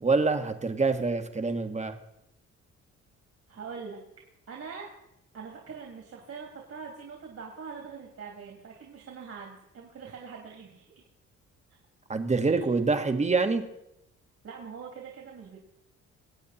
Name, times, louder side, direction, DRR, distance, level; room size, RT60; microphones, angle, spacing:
voice 1, 0.0-1.9 12.1-13.6, right 4 dB, 25° right, 7 dB, 1.5 m, -26 dB
voice 2, 3.5-4.0 4.5-4.9 5.3-11.0 12.4-12.7 14.4-15.6, right 5 dB, 55° right, 0 dB, 2.9 m, -43 dB
23.5 x 8.5 x 4.3 m, 0.83 s
cardioid pair, 90°, 30 cm